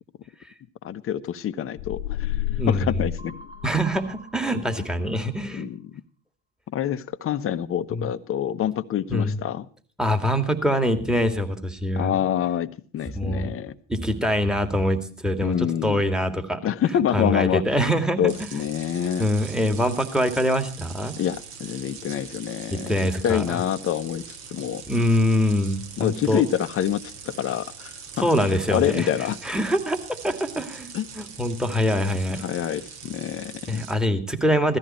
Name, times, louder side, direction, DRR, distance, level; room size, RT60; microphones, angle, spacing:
voice 1, 0.8-2.4 2.7-3.3 5.6-6.0 6.7-9.7 12.0-13.8 15.4-16.0 16.6-17.6 18.2-19.3 21.2-23.0 23.2-24.8 26.0-29.4 30.9-31.1 32.4-33.9, left 10 dB, 40° left, 1.1 m, -26 dB
sound 1, 1.8-4.2, left 14 dB, 60° left, 0.8 m, -31 dB
voice 2, 2.6-3.0 3.6-5.7 7.9-8.1 9.1-9.4 10.0-12.2 13.1-13.5 13.9-16.6 16.9-18.6 19.2-21.2 22.7-23.6 24.9-26.4 28.2-32.4 33.7-34.8, equal, ahead, 2.4 m, -24 dB
sound 2, 3.2-5.8, right 2 dB, 25° right, 7.0 m, -48 dB
sound 3, 18.3-33.9, right 6 dB, 50° right, 3.8 m, -42 dB
17.0 x 13.5 x 4.4 m
hypercardioid pair, 80°, 34 cm